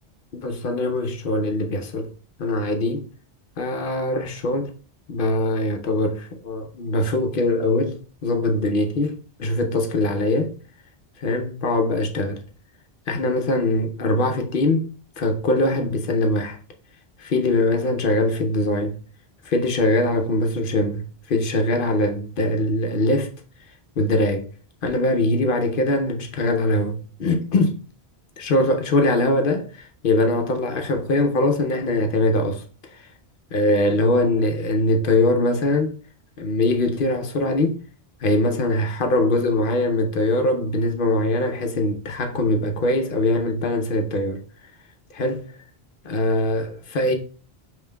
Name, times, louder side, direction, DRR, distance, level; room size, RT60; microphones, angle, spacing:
voice 1, 0.3-2.1 2.4-3.1 3.6-4.7 5.1-10.5 11.2-12.4 13.1-14.9 15.2-16.6 17.2-19.0 19.5-23.3 24.0-24.5 24.8-27.8 28.4-32.6 33.5-36.0 36.4-37.8 38.2-44.4 45.1-45.5 46.0-47.1, left 2 dB, 60° left, 0.8 m, -22 dB
5.3 x 3.2 x 2.2 m
omnidirectional pair, 1.1 m